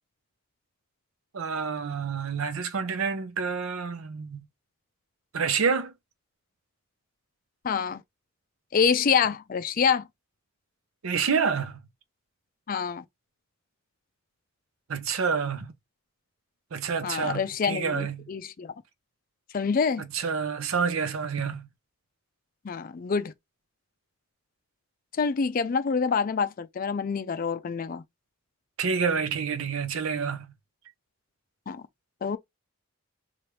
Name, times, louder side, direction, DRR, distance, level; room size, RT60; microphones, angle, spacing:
voice 1, 1.3-4.4 5.3-5.9 11.0-11.8 14.9-15.7 16.7-18.3 20.1-21.7 28.8-30.5, right 6 dB, 75° right, 0.6 m, -28 dB
voice 2, 7.6-8.0 8.7-10.1 12.7-13.0 17.0-18.7 19.5-20.0 22.6-23.3 25.2-28.0 31.7-31.8 32.2-32.4, left 6 dB, 40° left, 0.4 m, -26 dB
3.0 x 2.4 x 3.1 m
head